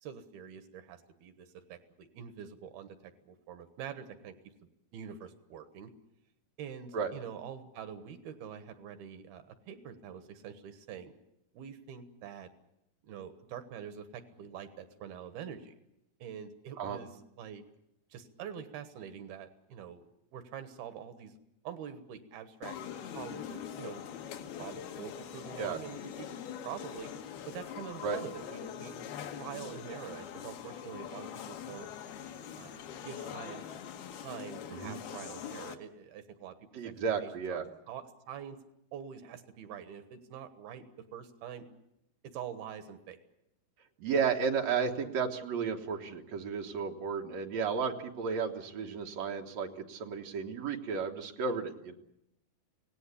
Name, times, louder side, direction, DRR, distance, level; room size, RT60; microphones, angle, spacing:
voice 1, 0.0-4.3 4.9-5.9 6.6-11.1 11.5-12.5 13.0-15.7 16.2-17.6 18.1-20.1 20.3-21.4 21.6-22.8 23.1-24.0 24.6-26.3 26.6-27.1 27.5-31.9 32.6-33.7 34.1-36.6 36.8-36.9 37.2-38.6 38.9-40.8 41.1-41.7 42.2-43.2, right 8 dB, 85° right, 9 dB, 3.2 m, -45 dB
sound 1, 22.6-35.8, left 9 dB, 85° left, 3.3 m, -43 dB
voice 2, 36.7-37.6 44.0-51.9, right 6 dB, 55° right, 3 dB, 2.4 m, -33 dB
25.0 x 18.0 x 8.4 m, 0.82 s
omnidirectional pair, 4.3 m